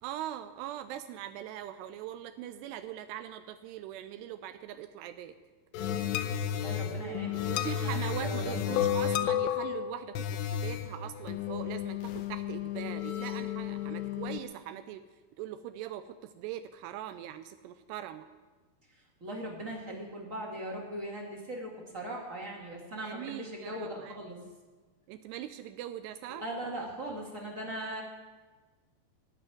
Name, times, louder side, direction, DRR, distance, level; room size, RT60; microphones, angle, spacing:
voice 1, 0.0-5.3 6.9-15.0 15.4-18.3 23.0-24.2 25.1-26.4, right 12 dB, 85° right, 9 dB, 2.7 m, -41 dB
sound 1, 5.7-14.4, left 9 dB, 85° left, 2.9 m, -32 dB
voice 2, 6.6-8.9 19.2-24.4 26.3-28.0, right 1 dB, 30° right, -2 dB, 1.4 m, -39 dB
16.5 x 5.7 x 9.8 m, 1.3 s
omnidirectional pair, 4.8 m